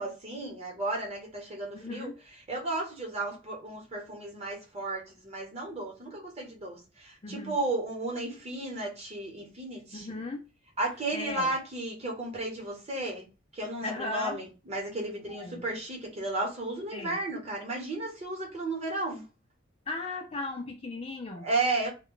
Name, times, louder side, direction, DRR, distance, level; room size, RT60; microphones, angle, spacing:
voice 1, 0.0-2.1 2.5-10.2 10.8-13.3 13.5-19.3 21.4-21.9, right 2 dB, 30° right, 1.0 m, -34 dB
voice 2, 1.7-2.1 7.2-7.6 9.9-10.4 11.1-11.5 13.8-14.4 15.3-15.6 16.9-17.2 19.9-21.5, left 2 dB, 30° left, 0.4 m, -37 dB
2.2 x 2.1 x 3.6 m
head